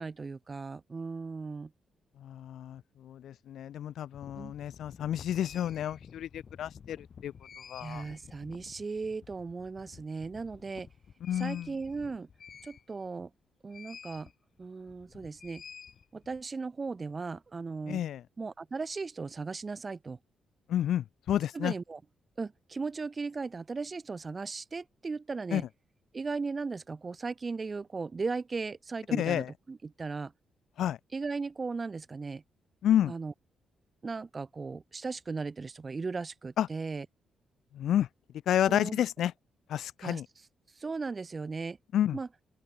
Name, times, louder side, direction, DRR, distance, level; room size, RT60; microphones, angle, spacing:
voice 1, 0.0-1.7 4.4-4.5 7.8-10.9 11.4-12.3 12.6-13.3 13.6-14.3 14.6-15.6 16.1-18.0 18.4-20.2 21.5-22.0 22.4-25.6 26.1-30.3 31.1-32.4 33.1-33.3 34.0-37.1 38.7-39.0 40.0-40.2 40.8-41.8 42.1-42.3, right 4 dB, 25° right, 0.5 m, -37 dB
voice 2, 2.2-8.0 11.2-11.7 17.9-18.2 20.7-21.7 25.5-25.6 29.1-29.5 30.8-31.0 32.8-33.1 36.6-36.7 37.7-38.1 38.5-39.3 39.7-40.3 41.9-42.2, left 11 dB, 75° left, 0.3 m, -30 dB
sound 1, 4.1-13.2 13.7-14.3 14.6-16.4, left 7 dB, 45° left, 8.0 m, -51 dB
open air
cardioid pair, 125°, 0 cm